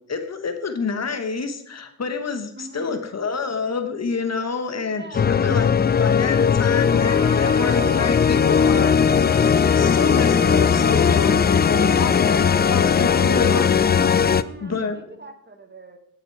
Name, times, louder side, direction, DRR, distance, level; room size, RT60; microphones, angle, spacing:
voice 1, 0.1-9.2 9.8-13.7 14.6-15.0, left 4 dB, 60° left, 8 dB, 1.1 m, -28 dB
voice 2, 2.6-3.1 4.8-5.6 11.1-11.9 14.2-16.0, right 2 dB, 35° right, 7 dB, 1.4 m, -42 dB
sound 1, 5.1-14.4, left 7 dB, 35° left, 0.4 m, -18 dB
Trumpet, 6.9-14.1, right 1 dB, 15° left, 4.4 m, -37 dB
10.5 x 6.3 x 4.6 m, 0.69 s
cardioid pair, 60°, 29 cm